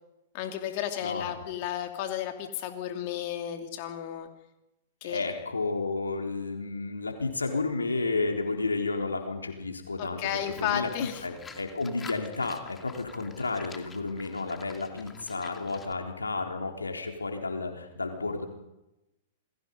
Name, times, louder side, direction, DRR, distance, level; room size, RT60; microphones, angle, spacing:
voice 1, 0.3-4.3 5.0-5.3 10.0-11.2, left 10 dB, 50° left, 5 dB, 2.5 m, -33 dB
voice 2, 1.0-1.3 5.0-10.3 10.6-10.9 11.2-18.5, left 3 dB, 90° left, 3 dB, 3.9 m, -32 dB
Livestock farm animals working animals, 10.3-15.9, left 5 dB, 15° left, 2.5 m, -48 dB
28.5 x 21.0 x 5.4 m, 0.95 s
hypercardioid pair, 110°, 0 cm